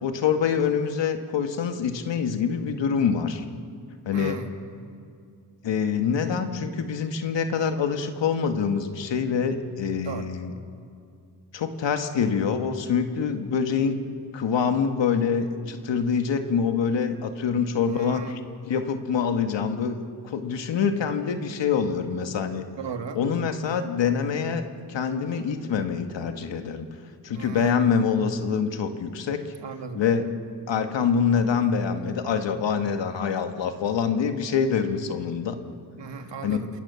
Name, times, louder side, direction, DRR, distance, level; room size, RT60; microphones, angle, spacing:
voice 1, 0.0-3.5 4.1-4.4 5.6-10.5 11.5-14.0 14.3-18.4 18.7-20.0 20.2-22.6 23.2-26.9 27.2-29.4 29.9-30.2 30.7-35.6 36.4-36.7, left 6 dB, 90° left, 6 dB, 1.9 m, -25 dB
voice 2, 4.1-4.5 10.0-10.3 17.8-18.3 22.8-23.2 27.3-27.7 29.6-30.0 36.0-36.7, right 6 dB, 80° right, 5 dB, 2.4 m, -36 dB
28.5 x 26.5 x 7.1 m, 2.3 s
cardioid pair, 60°, 42 cm